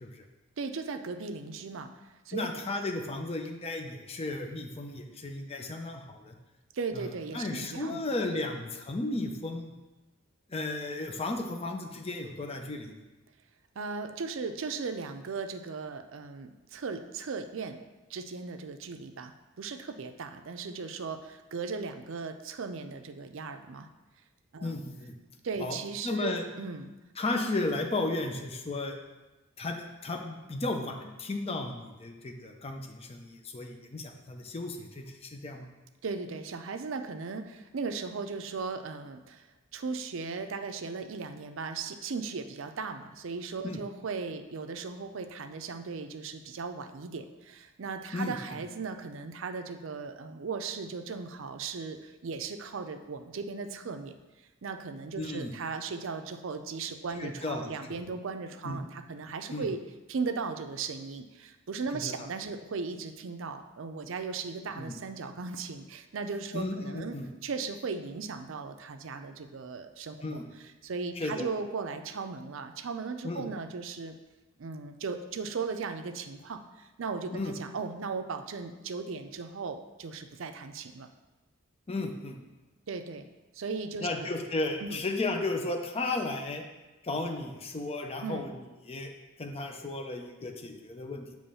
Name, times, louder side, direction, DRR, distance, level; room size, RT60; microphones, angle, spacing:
voice 1, 0.6-1.9 2.3-2.5 6.7-8.0 8.3-8.6 13.8-17.8 18.1-23.9 24.5-24.8 25.4-26.9 36.0-39.5 39.7-54.1 54.6-59.8 60.1-70.4 70.8-74.1 74.6-81.1 82.9-83.3 83.5-84.3 84.8-85.0 88.2-88.5, right 4 dB, 65° right, 8 dB, 0.5 m, -37 dB
voice 2, 2.3-6.3 6.9-7.0 7.3-9.7 10.5-12.9 24.6-25.1 25.6-25.8 26.0-26.4 27.2-29.0 29.6-35.7 43.6-43.8 48.1-48.6 55.2-55.5 57.2-57.7 58.6-58.8 59.5-59.7 61.9-62.1 64.8-64.9 66.5-67.3 70.2-70.4 71.2-71.5 73.2-73.5 77.3-77.5 81.9-82.4 84.0-86.6 87.0-88.6 88.9-89.1 89.4-91.3, left 2 dB, 30° left, 4 dB, 0.6 m, -34 dB
7.0 x 3.1 x 5.5 m, 1.1 s
head